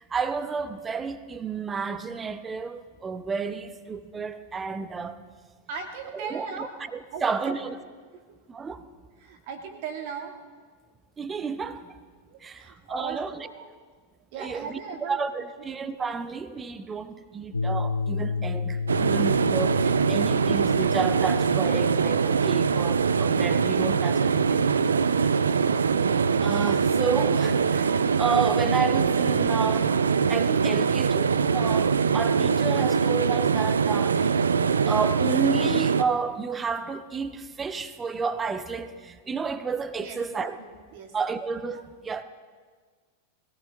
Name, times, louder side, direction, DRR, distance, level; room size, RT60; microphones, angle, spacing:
voice 1, 0.0-5.2 6.1-6.7 6.9-7.8 8.5-8.8 11.2-12.0 12.4-13.5 14.4-24.7 26.4-29.9 30.3-34.3 34.9-40.6 41.1-42.2, right 5 dB, 20° right, 0.9 m, -31 dB
voice 2, 5.7-6.7 7.1-7.6 9.2-10.4 12.3-13.7 14.3-15.2 25.2-25.7 40.0-40.2 40.6-41.1, right 6 dB, 50° right, 2.2 m, -38 dB
sound 1, 17.5-24.6, left 4 dB, 80° left, 0.4 m, -33 dB
sound 2, 18.9-36.0, right 6 dB, 70° right, 0.5 m, -23 dB
21.0 x 17.0 x 3.6 m
figure-of-eight pair, 90°, 0 cm